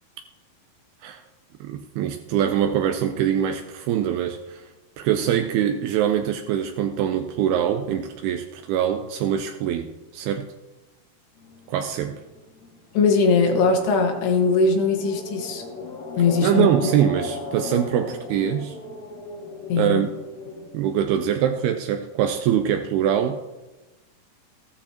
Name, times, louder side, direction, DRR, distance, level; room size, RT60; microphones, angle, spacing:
voice 1, 1.6-4.7 5.0-10.5 11.7-12.1 16.4-18.8 19.8-20.1 20.7-23.4, right 9 dB, 80° right, 6 dB, 2.5 m, -23 dB
sound 1, 11.4-20.6, left 3 dB, 60° left, 5.1 m, -37 dB
voice 2, 13.0-15.6 16.2-16.7 19.7-20.0, left 4 dB, 90° left, 3 dB, 3.5 m, -20 dB
14.5 x 13.0 x 2.9 m, 1.1 s
omnidirectional pair, 4.6 m